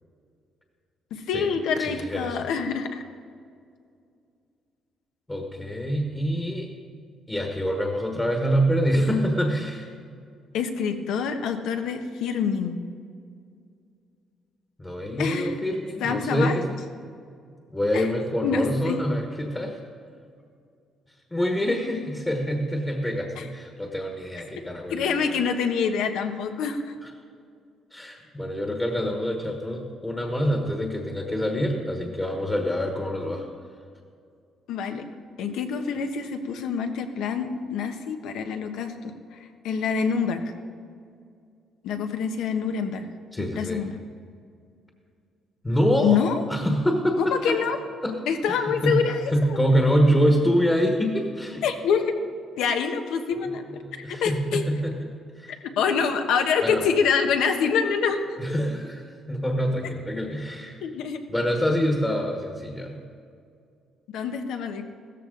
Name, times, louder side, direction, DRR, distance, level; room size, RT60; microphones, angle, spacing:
voice 1, 1.1-3.0 10.5-12.8 15.2-15.5 16.0-16.6 17.9-18.1 18.4-19.0 23.4-23.5 24.9-26.9 34.7-35.0 35.4-39.4 39.6-40.4 41.8-43.1 43.4-44.0 46.0-46.4 47.4-47.8 48.3-49.6 51.6-52.1 52.6-53.6 54.1-54.6 55.8-58.2 60.8-61.2 64.1-64.8, left 6 dB, 85° left, 6 dB, 1.2 m, -26 dB
voice 2, 1.8-2.5 5.3-6.7 7.3-9.9 14.8-16.6 17.7-19.8 21.3-25.3 27.0-27.1 27.9-33.4 43.3-43.8 45.6-46.2 46.5-47.6 48.0-48.1 48.5-49.0 49.3-51.6 53.8-55.5 56.6-56.8 58.4-60.8 61.3-63.0, equal, 15° left, 2 dB, 1.3 m, -25 dB
15.5 x 14.0 x 3.9 m, 2.3 s
cardioid pair, 145°, 0 cm